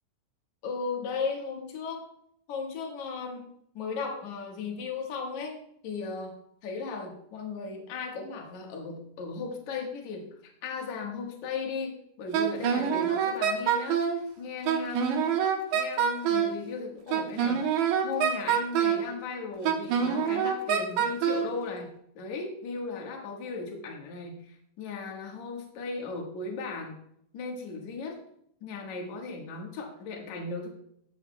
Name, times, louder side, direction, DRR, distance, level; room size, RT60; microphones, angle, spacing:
voice 1, 0.6-2.1 2.5-3.5 3.7-6.3 6.6-10.3 10.6-14.1 14.4-15.1 15.7-17.7 18.0-27.0 27.3-28.2 28.6-30.7, left 4 dB, 65° left, 1 dB, 1.8 m, -36 dB
Wind instrument woodwind instrument, 12.3-14.2 14.7-16.6 17.1-19.1 19.7-21.5, right 8 dB, 75° right, 3.1 m, -26 dB
15.5 x 7.3 x 2.3 m, 0.70 s
omnidirectional pair, 5.6 m